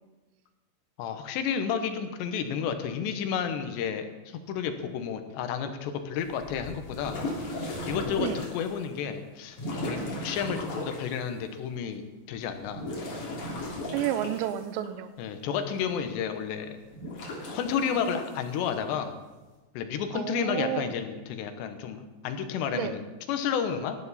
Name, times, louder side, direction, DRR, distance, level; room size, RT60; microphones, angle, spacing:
voice 1, 1.0-7.2 7.9-10.0 10.2-12.0 12.3-12.9 13.7-14.0 15.2-16.8 17.5-19.1 19.7-24.0, left 7 dB, 80° left, 8 dB, 3.2 m, -31 dB
sound 1, 6.2-8.7 9.5-11.1 12.6-14.9 16.9-18.3, left 1 dB, 45° left, 4.3 m, -36 dB
voice 2, 13.9-15.1 20.1-20.9 22.7-23.0, right 11 dB, 90° right, 11 dB, 3.1 m, -31 dB
18.0 x 12.0 x 4.2 m, 1.2 s
omnidirectional pair, 5.0 m